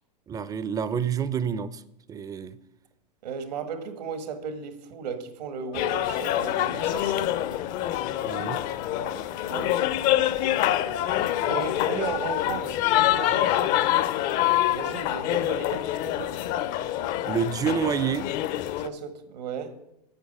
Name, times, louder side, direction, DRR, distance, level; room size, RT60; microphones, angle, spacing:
voice 1, 0.3-1.8 2.1-2.6 8.2-8.6 17.3-18.3, right 7 dB, 15° right, 0.5 m, -28 dB
voice 2, 3.2-7.3 8.9-10.4 11.5-13.9 14.7-16.3 18.7-19.8, right 6 dB, 75° right, 1.6 m, -36 dB
sound 1, 5.7-18.9, left 13 dB, 40° left, 0.6 m, -26 dB
8.9 x 8.1 x 5.4 m
hypercardioid pair, 120°, 21 cm